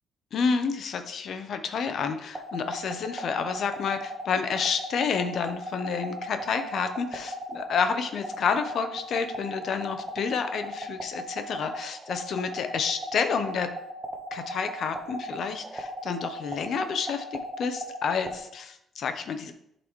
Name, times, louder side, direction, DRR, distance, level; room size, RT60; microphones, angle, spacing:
voice 1, 0.3-13.7 14.3-19.5, left 6 dB, 65° left, 8 dB, 0.7 m, -29 dB
sound 1, 2.3-18.4, right 1 dB, 25° right, 1.1 m, -37 dB
11.0 x 4.0 x 3.1 m, 0.77 s
cardioid pair, 90°, 0 cm